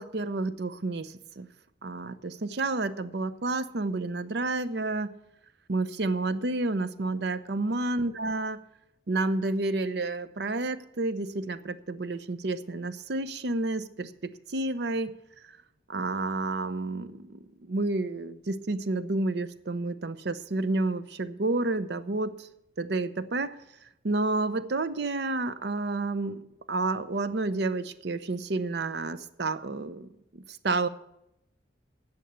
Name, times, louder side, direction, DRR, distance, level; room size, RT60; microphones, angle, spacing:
voice 1, 0.0-1.5 1.8-5.1 5.7-8.6 9.1-15.2 15.5-15.6 15.9-22.5 22.8-30.9, right 2 dB, 65° right, 0.6 m, -30 dB
9.7 x 6.6 x 8.9 m
head